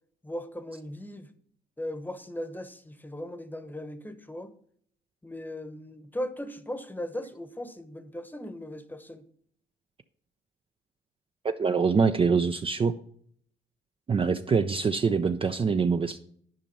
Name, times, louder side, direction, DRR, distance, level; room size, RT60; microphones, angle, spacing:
voice 1, 0.2-1.3 1.8-4.5 5.2-9.2, left 1 dB, 10° left, 11 dB, 1.0 m, -38 dB
voice 2, 11.4-12.9 14.1-16.2, right 5 dB, 25° right, 8 dB, 0.4 m, -24 dB
10.5 x 5.3 x 5.3 m, 0.63 s
cardioid pair, 90°, 20 cm